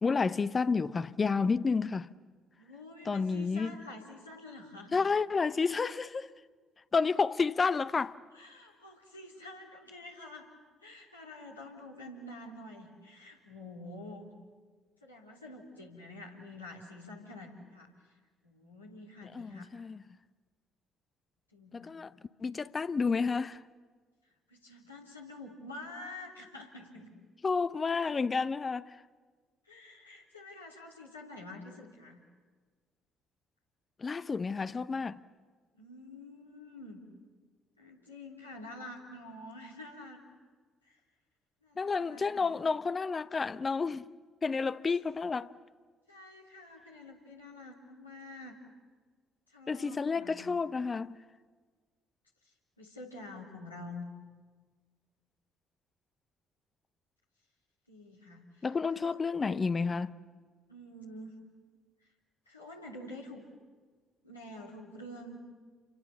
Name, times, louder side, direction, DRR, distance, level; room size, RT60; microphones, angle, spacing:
voice 1, 0.0-2.1 3.1-3.8 4.9-6.3 6.9-8.2 19.3-20.0 21.7-22.1 22.4-23.6 27.4-29.0 34.0-35.2 41.8-44.0 44.4-45.5 49.7-51.2 58.6-60.1, left 4 dB, 30° left, 0.8 m, -30 dB
voice 2, 2.5-5.0 8.3-10.5 10.8-14.3 15.0-17.9 18.4-19.7 21.5-21.9 24.5-27.1 29.6-32.2 35.7-37.0 37.8-40.2 40.8-41.0 41.6-42.6 46.1-48.6 49.5-50.4 52.8-54.1 57.9-58.7 58.9-59.2 60.7-61.4 62.4-63.4 64.2-65.4, left 2 dB, 90° left, 3.3 m, -47 dB
29.5 x 24.5 x 7.1 m
figure-of-eight pair, 45°, 0 cm